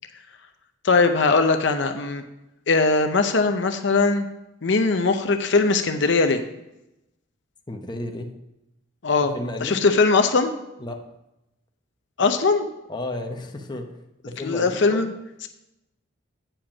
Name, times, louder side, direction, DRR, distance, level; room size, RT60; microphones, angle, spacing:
voice 1, 0.8-2.2 2.7-4.3 4.6-6.4 9.0-9.3 9.6-10.5 12.2-12.7 14.4-15.1, left 3 dB, 55° left, 7 dB, 0.6 m, -20 dB
voice 2, 7.7-8.3 9.2-9.9 10.8-11.0 12.9-13.9 14.2-15.1, left 1 dB, 20° left, 3 dB, 0.7 m, -33 dB
8.8 x 5.0 x 6.0 m, 0.93 s
head